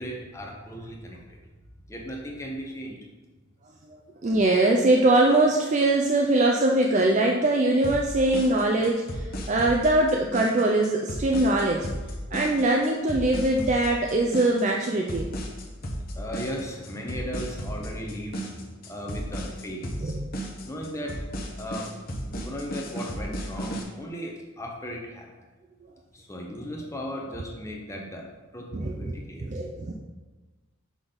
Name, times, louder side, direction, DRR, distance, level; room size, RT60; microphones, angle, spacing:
voice 1, 0.0-1.4 1.9-3.0 16.2-18.4 18.9-20.2 20.7-21.2 21.6-21.9 22.3-25.3 26.1-28.3 28.5-29.5, equal, 15° left, 0 dB, 0.8 m, -36 dB
voice 2, 3.9-11.9 12.3-15.3 20.0-20.3 28.7-29.1 29.4-29.9, right 2 dB, 35° right, 0 dB, 0.4 m, -22 dB
sound 1, 7.8-23.8, equal, 45° left, 0.9 m, -34 dB
6.0 x 5.2 x 3.8 m, 1.2 s
head